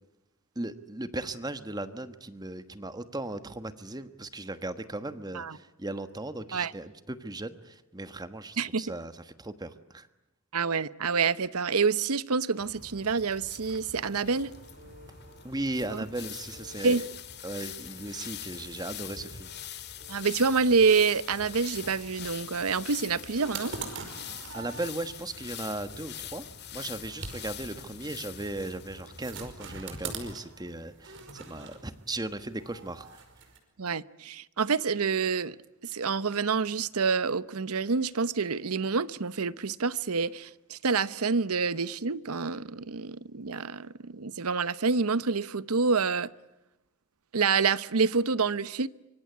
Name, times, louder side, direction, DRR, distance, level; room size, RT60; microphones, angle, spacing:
voice 1, 0.5-9.1 9.4-10.1 15.4-17.0 17.4-19.5 24.5-26.5 26.7-33.2, right 2 dB, 20° right, 1.3 m, -37 dB
voice 2, 10.5-14.5 15.9-16.0 16.8-17.0 20.1-23.7 33.8-35.6 35.8-46.3 47.3-48.9, right 5 dB, 85° right, 0.9 m, -27 dB
sound 1, 12.5-30.3, left 9 dB, 50° left, 2.1 m, -44 dB
sound 2, 13.8-33.6, right 4 dB, 60° right, 5.2 m, -46 dB
25.0 x 25.0 x 9.6 m
head